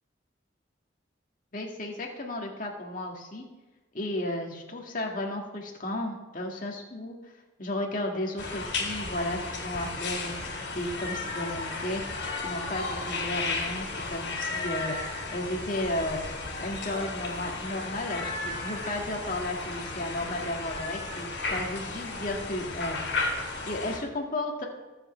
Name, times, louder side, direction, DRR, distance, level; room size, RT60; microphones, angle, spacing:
voice 1, 1.5-3.4 3.9-7.2 7.6-12.0 12.4-15.0 15.3-16.2 16.6-23.2 23.7-24.6, left 1 dB, 45° left, 0 dB, 2.1 m, -34 dB
sound 1, 8.4-24.0, left 3 dB, 65° left, 3.5 m, -34 dB
22.5 x 7.7 x 3.4 m, 1.1 s
head